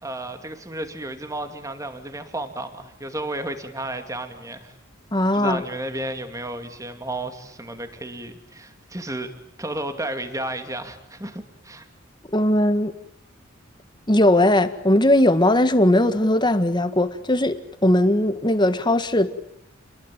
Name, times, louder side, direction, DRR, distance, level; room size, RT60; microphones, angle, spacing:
voice 1, 0.0-4.7 5.1-9.3 9.6-11.9, right 1 dB, 15° right, 7 dB, 2.6 m, -32 dB
voice 2, 5.1-5.6 12.3-12.9 14.1-19.3, left 1 dB, 20° left, 10 dB, 1.8 m, -19 dB
29.5 x 21.5 x 9.0 m, 0.76 s
head